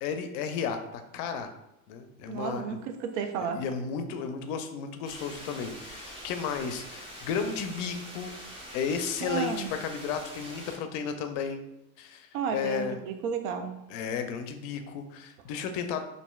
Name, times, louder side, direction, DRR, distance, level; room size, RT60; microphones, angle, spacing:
voice 1, 0.0-1.5 1.9-2.8 3.6-8.3 8.7-9.5 9.8-11.6 12.0-13.0 13.9-16.0, left 6 dB, 60° left, 7 dB, 0.5 m, -33 dB
voice 2, 2.3-3.6 9.2-9.7 12.3-13.7, right 6 dB, 65° right, 7 dB, 0.5 m, -32 dB
sound 1, 5.0-10.8, equal, 15° right, 0.6 m, -44 dB
3.0 x 2.6 x 2.2 m, 0.89 s
supercardioid pair, 100°, 43 cm